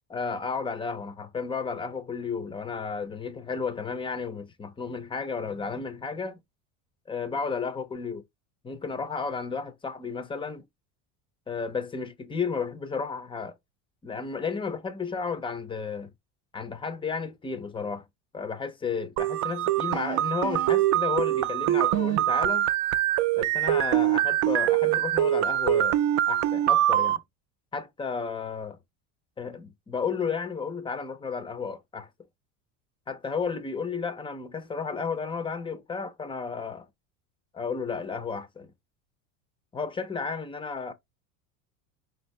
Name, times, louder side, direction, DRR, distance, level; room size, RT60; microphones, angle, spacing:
voice 1, 0.1-6.4 7.1-8.2 8.6-10.6 11.5-13.6 14.0-16.1 16.5-18.1 18.3-22.7 23.4-27.2 27.7-28.8 29.4-32.1 33.1-36.9 37.5-38.7 39.7-40.9, left 5 dB, 15° left, 0.5 m, -33 dB
sound 1, 19.2-27.2, right 13 dB, 50° right, 0.5 m, -24 dB
5.0 x 2.7 x 3.1 m
supercardioid pair, 120°, 39 cm